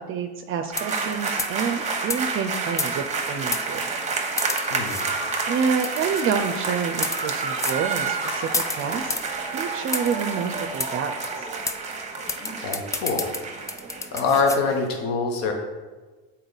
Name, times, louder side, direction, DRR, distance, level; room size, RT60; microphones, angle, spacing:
voice 1, 0.0-3.8 5.5-9.2 9.5-11.5, right 6 dB, 45° right, 6 dB, 0.5 m, -28 dB
sound 1, 0.7-1.1 1.4-1.6 2.1-2.2 2.8-3.1 3.5-3.6 4.4-5.1 5.8-6.3 6.9-7.2 7.6-7.8 8.5-9.3 9.9-10.2 10.8-10.9 11.2-11.3 11.7-11.8 12.3-14.6, left 3 dB, 10° left, 0.3 m, -30 dB
sound 2, 0.7-14.9, right 4 dB, 20° right, 1.0 m, -29 dB
voice 2, 12.4-13.3 14.1-15.5, left 4 dB, 85° left, 3 dB, 1.1 m, -24 dB
7.8 x 4.1 x 4.0 m, 1.3 s
supercardioid pair, 100°, 31 cm